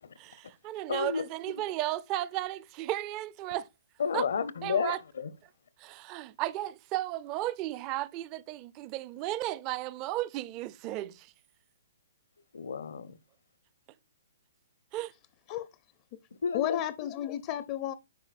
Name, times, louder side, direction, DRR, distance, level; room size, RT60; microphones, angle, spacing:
voice 1, 0.2-3.7 4.1-4.2 4.6-5.0 5.8-11.3 14.9-15.1, right 15 dB, 30° right, 0.5 m, -34 dB
voice 2, 0.9-1.2 4.0-5.3 12.5-13.2 16.4-16.8, left 6 dB, 70° left, 0.8 m, -31 dB
voice 3, 16.5-17.9, left 12 dB, 35° left, 0.5 m, -32 dB
10.5 x 4.6 x 2.5 m
hypercardioid pair, 140°, 0 cm